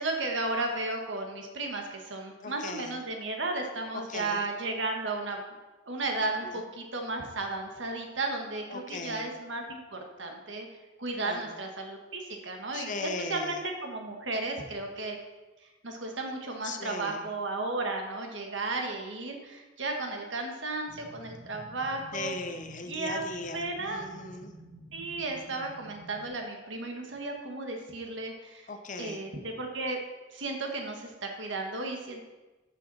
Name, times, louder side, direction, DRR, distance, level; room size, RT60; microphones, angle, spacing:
voice 1, 0.0-5.4 5.9-10.7 11.0-15.2 15.8-22.3 22.9-23.2 23.5-24.1 24.9-28.7 29.0-30.0 30.3-32.2, right 2 dB, 75° right, 2 dB, 1.6 m, -34 dB
voice 2, 2.4-2.9 3.9-4.5 6.2-6.6 8.7-9.3 11.2-11.5 12.7-13.6 16.6-17.3 22.1-24.5 28.7-29.2, left 3 dB, 45° left, 7 dB, 0.8 m, -38 dB
sound 1, 20.9-26.3, equal, 30° right, 1.6 m, -50 dB
13.5 x 5.9 x 4.2 m, 1.2 s
head